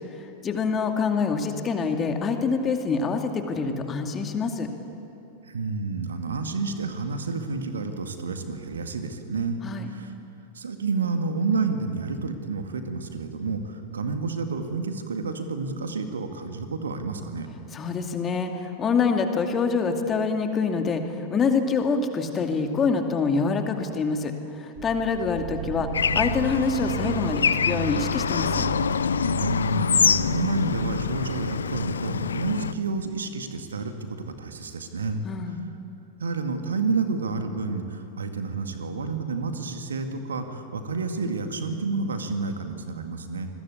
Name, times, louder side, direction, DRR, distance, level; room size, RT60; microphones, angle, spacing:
voice 1, 0.2-4.7 9.6-9.9 17.7-25.9 26.1-28.7 35.2-35.7, left 5 dB, 25° left, 5 dB, 2.4 m, -26 dB
voice 2, 5.4-9.6 9.9-10.1 10.5-17.5 29.4-35.6 36.2-43.5, right 4 dB, 70° right, 6 dB, 2.1 m, -30 dB
sound 1, 24.8-32.6, right 11 dB, 40° right, 5.3 m, -37 dB
Bird / Traffic noise roadway noise, 25.9-32.7, left 6 dB, 70° left, 0.6 m, -25 dB
27.5 x 21.0 x 8.6 m, 2.8 s
figure-of-eight pair, 90°, 0 cm